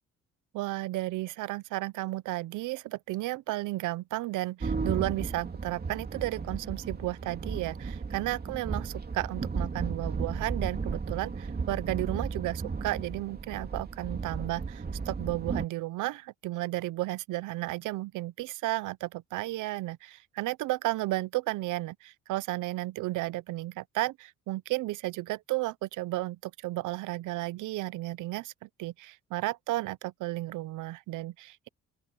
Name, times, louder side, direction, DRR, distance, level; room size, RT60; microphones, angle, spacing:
voice 1, 0.5-31.7, right 18 dB, 85° right, 0.7 m, -33 dB
sound 1, 4.6-15.6, right 4 dB, 30° right, 3.0 m, -35 dB
open air
cardioid pair, 90°, 30 cm